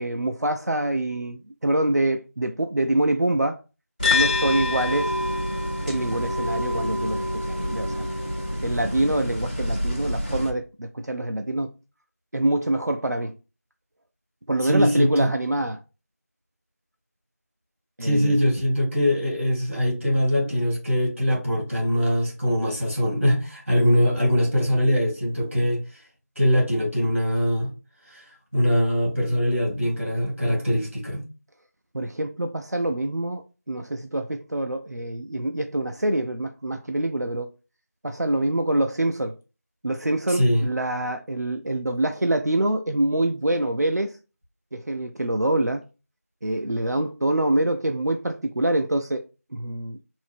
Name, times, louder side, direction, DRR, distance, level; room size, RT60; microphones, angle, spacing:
voice 1, 0.0-3.6 4.1-5.1 5.9-8.1 8.6-11.7 12.3-13.3 14.5-15.8 18.0-18.4 31.9-37.5 38.0-39.3 39.8-44.2 44.7-45.9 46.4-49.2 49.5-50.0, right 1 dB, 90° right, 0.5 m, -25 dB
sound 1, 4.0-10.5, left 2 dB, 25° left, 0.9 m, -27 dB
voice 2, 14.6-15.3 18.0-25.8 26.4-27.7 28.1-31.2 40.3-40.7, equal, 45° right, 2.3 m, -22 dB
3.6 x 2.6 x 3.5 m
figure-of-eight pair, 180°, 9 cm